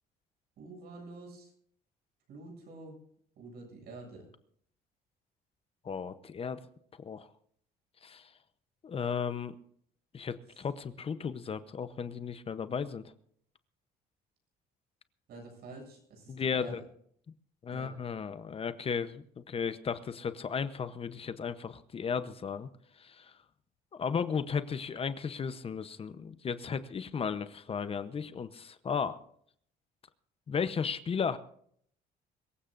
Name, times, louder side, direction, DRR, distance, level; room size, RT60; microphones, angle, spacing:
voice 1, 0.6-1.5 2.3-3.0 3.4-4.3 10.5-10.6 15.3-16.8 17.7-17.9, right 2 dB, 70° right, 1 dB, 7.4 m, -48 dB
voice 2, 5.8-6.6 7.0-7.3 8.0-8.3 8.8-9.5 10.1-13.0 16.3-16.8 17.6-22.7 23.0-23.3 24.0-29.2 30.5-31.4, left 6 dB, 35° left, 12 dB, 0.8 m, -35 dB
24.0 x 15.0 x 2.6 m, 0.63 s
cardioid pair, 110°, 17 cm